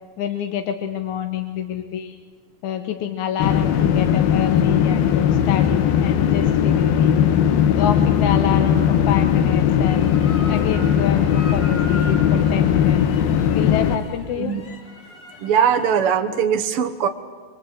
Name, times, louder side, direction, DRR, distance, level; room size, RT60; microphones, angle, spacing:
voice 1, 0.2-2.2 2.6-7.1 7.8-13.0 13.5-14.5, left 9 dB, 65° left, 6 dB, 2.3 m, -27 dB
sound 1, 3.4-14.0, left 9 dB, 90° left, 3.2 m, -18 dB
sound 2, 9.9-16.0, left 1 dB, 40° left, 3.9 m, -39 dB
voice 2, 15.4-17.1, right 8 dB, 60° right, 4 dB, 1.6 m, -20 dB
26.5 x 23.5 x 8.8 m, 1.4 s
omnidirectional pair, 4.2 m